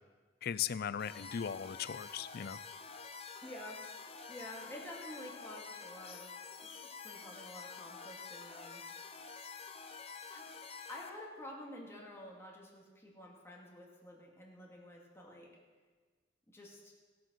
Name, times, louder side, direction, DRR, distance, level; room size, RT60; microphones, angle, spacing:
voice 1, 0.4-2.6, left 8 dB, 55° left, 16 dB, 0.4 m, -38 dB
sound 1, 1.0-11.1, left 5 dB, 35° left, 0.9 m, -48 dB
voice 2, 3.4-3.8 4.3-6.3 6.6-9.2 10.3-10.5 10.9-15.5 16.5-16.9, left 1 dB, 15° left, -3 dB, 2.4 m, -50 dB
16.0 x 7.8 x 6.4 m, 1.4 s
head